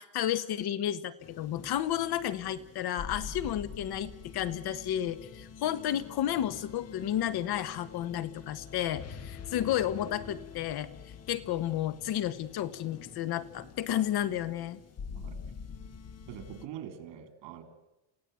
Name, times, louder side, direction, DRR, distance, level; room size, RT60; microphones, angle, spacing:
voice 1, 0.0-10.9 11.3-14.8, left 11 dB, 60° left, 13 dB, 1.5 m, -32 dB
sound 1, 1.2-16.7, left 6 dB, 35° left, 1.3 m, -46 dB
voice 2, 15.1-15.5 16.3-17.6, right 10 dB, 80° right, 8 dB, 3.9 m, -44 dB
28.0 x 16.0 x 9.2 m, 0.98 s
cardioid pair, 150°, 42 cm